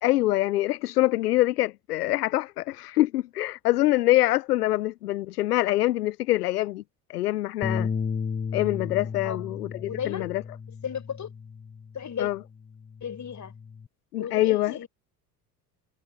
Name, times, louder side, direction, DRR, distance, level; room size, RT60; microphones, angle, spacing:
voice 1, 0.0-6.8 7.1-7.9 8.5-10.4 12.2-12.4 14.1-14.8, left 16 dB, 80° left, 1.0 m, -25 dB
Bass guitar, 7.6-12.1 12.5-13.9, left 6 dB, 20° left, 1.1 m, -34 dB
voice 2, 9.9-10.3 10.8-11.3 11.9-12.3 13.0-13.5 14.2-14.9, left 8 dB, 40° left, 6.4 m, -34 dB
hypercardioid pair, 60°, 46 cm